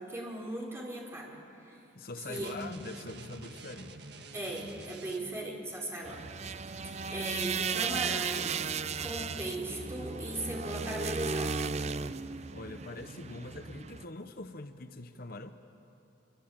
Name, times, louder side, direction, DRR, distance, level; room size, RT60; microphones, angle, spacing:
voice 1, 0.0-1.8 2.2-2.5 4.3-6.2 6.7-8.6 9.0-11.6, right 1 dB, 15° right, -3 dB, 4.9 m, -38 dB
voice 2, 1.9-4.0 12.5-15.6, left 2 dB, 55° left, 8 dB, 1.0 m, -43 dB
sound 1, 2.3-5.5, right 3 dB, 65° right, 1.5 m, -49 dB
sound 2, 6.0-14.0, right 5 dB, 35° right, 0.6 m, -35 dB
27.5 x 24.0 x 8.8 m, 2.8 s
head